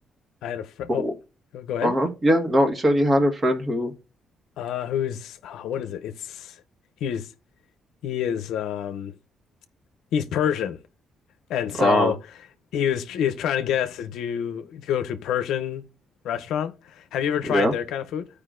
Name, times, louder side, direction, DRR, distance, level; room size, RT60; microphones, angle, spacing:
voice 1, 0.4-1.1 1.5-2.0 4.6-6.6 7.0-7.3 8.0-9.1 10.1-10.8 11.5-12.2 12.7-15.8 16.2-18.3, left 9 dB, 85° left, 0.6 m, -27 dB
voice 2, 1.8-3.9 11.8-12.1 17.5-17.7, equal, 35° right, 1.5 m, -21 dB
14.5 x 4.9 x 2.5 m
cardioid pair, 90°, 0 cm